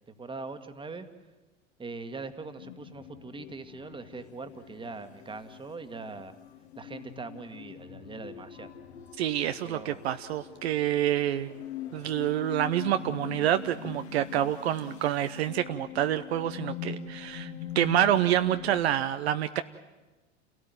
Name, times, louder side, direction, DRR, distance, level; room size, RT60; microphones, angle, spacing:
voice 1, 0.1-1.1 1.8-6.3 6.8-8.7 9.6-10.0, right 3 dB, 15° right, 8 dB, 1.8 m, -41 dB
sound 1, 2.6-18.8, left 8 dB, 65° left, 2.3 m, -43 dB
voice 2, 9.2-11.5 11.9-19.6, right 11 dB, 60° right, 10 dB, 0.9 m, -27 dB
29.0 x 17.0 x 9.4 m, 1.2 s
figure-of-eight pair, 85°, 36 cm